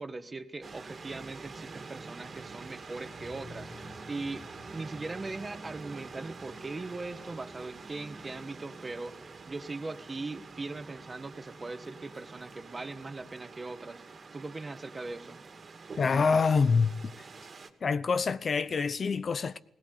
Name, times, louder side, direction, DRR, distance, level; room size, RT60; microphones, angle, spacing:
voice 1, 0.0-4.4 4.7-14.0 14.3-15.4, right 3 dB, 30° right, 1.6 m, -40 dB
sound 1, 0.6-17.7, right 4 dB, 50° right, 2.3 m, -46 dB
sound 2, 3.2-11.7, left 2 dB, 35° left, 3.0 m, -56 dB
voice 2, 16.0-17.1 17.8-19.6, left 5 dB, 50° left, 0.8 m, -26 dB
20.0 x 18.0 x 8.4 m
cardioid pair, 90°, 0 cm